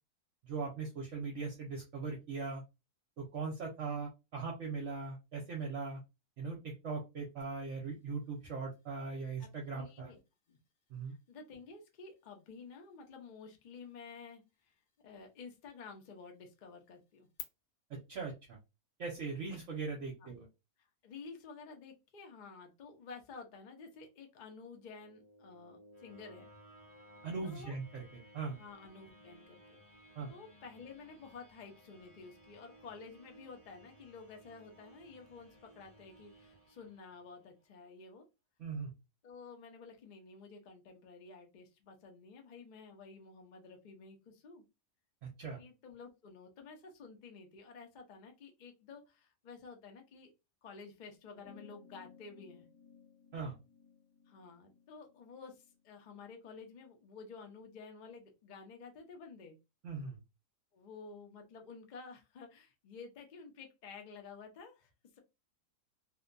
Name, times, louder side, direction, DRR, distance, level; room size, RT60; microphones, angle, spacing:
voice 1, 0.4-2.6 3.2-6.0 6.4-10.1 10.9-11.1 17.9-18.6 19.0-20.5 27.2-28.0 28.3-28.6 30.2-30.3 38.6-38.9 45.2-45.6 53.3-53.6 59.8-60.2, right 4 dB, 60° right, -1 dB, 0.9 m, -40 dB
sound 1, 7.4-17.4, left 7 dB, 85° left, 1.2 m, -60 dB
voice 2, 9.4-10.2 10.5-10.6 11.1-14.8 15.0-17.3 20.2-20.4 21.0-26.5 27.4-27.8 28.6-30.0 30.3-38.2 39.2-44.6 45.6-50.3 50.6-52.7 54.3-59.6 60.7-65.2, left 4 dB, 60° left, 3 dB, 0.4 m, -52 dB
sound 2, 24.6-37.6, equal, 10° right, 1.0 m, -60 dB
sound 3, 51.4-56.2, left 6 dB, 35° left, 0.8 m, -60 dB
2.7 x 2.1 x 2.4 m, 0.25 s
omnidirectional pair, 1.7 m